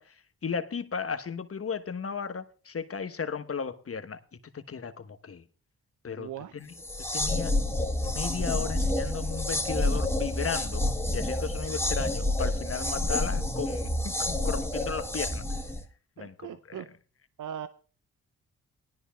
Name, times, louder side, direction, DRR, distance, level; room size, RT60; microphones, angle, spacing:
voice 1, 0.4-4.2 4.5-5.4 6.0-6.7 7.1-7.5 8.0-10.9 11.1-15.4 16.2-16.8, left 6 dB, 40° left, 1.2 m, -35 dB
voice 2, 6.1-6.5 16.2-16.9 17.4-17.7, right 9 dB, 60° right, 0.6 m, -39 dB
sound 1, 6.8-15.8, left 1 dB, 5° left, 1.3 m, -29 dB
19.5 x 11.5 x 2.3 m
supercardioid pair, 45°, 35 cm